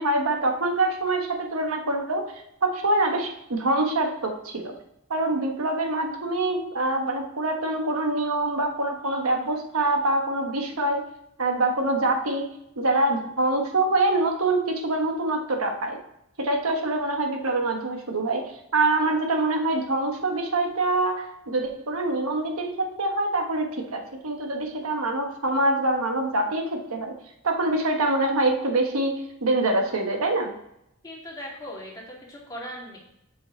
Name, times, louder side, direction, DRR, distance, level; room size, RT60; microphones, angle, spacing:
voice 1, 0.0-2.2 2.6-4.7 5.1-11.0 11.4-12.5 12.8-16.0 16.4-18.4 18.7-27.1 27.4-30.5, right 2 dB, 85° right, 3 dB, 1.2 m, -25 dB
voice 2, 31.0-33.0, equal, 20° left, -4 dB, 2.4 m, -39 dB
7.5 x 5.6 x 3.9 m, 0.79 s
head